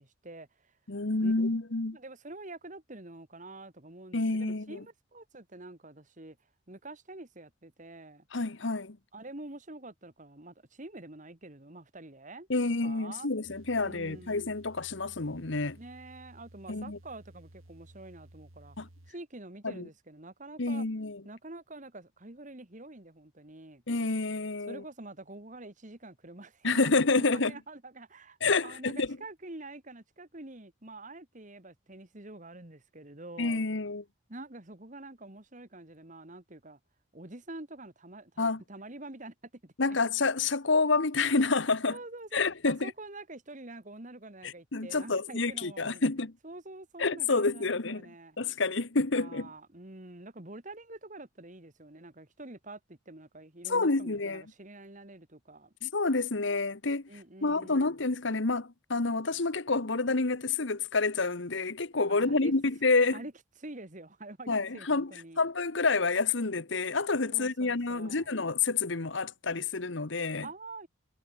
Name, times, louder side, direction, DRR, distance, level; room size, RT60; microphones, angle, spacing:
voice 1, 0.0-0.7 1.2-1.3 1.9-6.4 6.7-8.3 9.1-12.5 12.8-13.3 13.8-14.5 15.8-20.9 21.2-23.8 24.7-26.9 27.3-28.4 28.6-33.7 34.3-36.8 37.1-39.3 39.6-40.0 41.9-46.1 46.4-48.4 49.1-55.7 57.1-57.9 62.1-62.5 63.0-63.3 63.6-65.4 67.3-68.3 70.4-70.9, right 2 dB, 40° right, 2.0 m, -47 dB
voice 2, 0.9-2.0 4.1-4.8 8.3-9.0 12.5-15.8 16.7-17.0 18.8-18.9 19.6-19.9 20.6-21.2 23.9-24.8 26.6-27.5 28.4-29.1 33.4-34.0 38.4-38.6 39.8-42.0 42.3-42.9 44.7-46.3 47.0-48.0 48.4-49.5 53.7-54.4 55.8-57.0 57.4-63.2 64.5-65.1 65.4-70.5, left 3 dB, 65° left, 1.2 m, -28 dB
sound 1, 13.4-19.1, right 1 dB, 90° right, 2.7 m, -55 dB
head